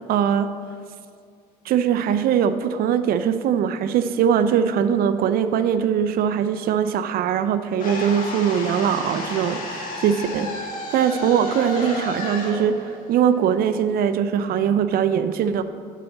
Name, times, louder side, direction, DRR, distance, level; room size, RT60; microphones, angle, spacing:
voice 1, 0.1-0.5 1.7-15.6, right 8 dB, 65° right, 11 dB, 0.5 m, -21 dB
sound 1, 7.8-13.9, left 2 dB, 55° left, 1.7 m, -32 dB
8.5 x 4.1 x 7.0 m, 2.2 s
cardioid pair, 110°, 17 cm